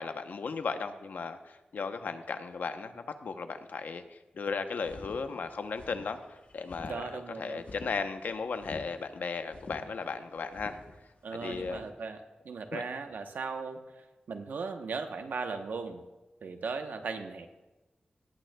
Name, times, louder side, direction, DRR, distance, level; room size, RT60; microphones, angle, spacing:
voice 1, 0.0-1.4 1.7-6.2 6.5-10.8 11.4-11.8 12.7-12.8, left 5 dB, 75° left, 8 dB, 0.8 m, -36 dB
sound 1, 4.8-11.9, left 3 dB, 45° left, 1.0 m, -48 dB
voice 2, 6.8-7.6 11.2-16.0 16.4-17.5, right 4 dB, 85° right, 6 dB, 0.9 m, -38 dB
19.0 x 9.1 x 2.3 m, 1.1 s
wide cardioid pair, 150°, 3 cm